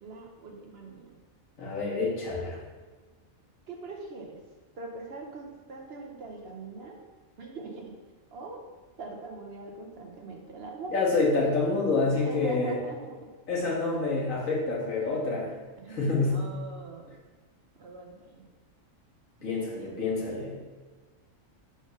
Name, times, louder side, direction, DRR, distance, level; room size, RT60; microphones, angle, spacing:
voice 1, 0.0-1.2 3.7-4.4 4.8-7.0 7.4-7.9 8.3-8.6 9.0-10.9 12.1-13.2 13.9-14.0 15.8-17.1 17.8-18.5 19.4-20.2, right 3 dB, 55° right, 1 dB, 0.9 m, -42 dB
voice 2, 1.6-2.6 10.9-12.7 13.5-15.6 15.9-16.5 19.4-20.6, left 3 dB, 75° left, -5 dB, 1.9 m, -27 dB
5.2 x 3.9 x 5.1 m, 1.3 s
omnidirectional pair, 1.4 m